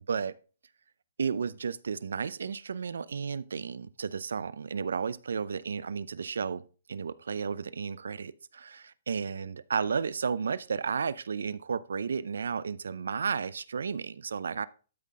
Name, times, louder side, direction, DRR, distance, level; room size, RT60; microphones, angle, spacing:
voice 1, 1.2-6.6 6.9-14.7, right 6 dB, 90° right, 18 dB, 0.5 m, -33 dB
12.0 x 5.8 x 3.6 m, 0.36 s
hypercardioid pair, 170°, 0 cm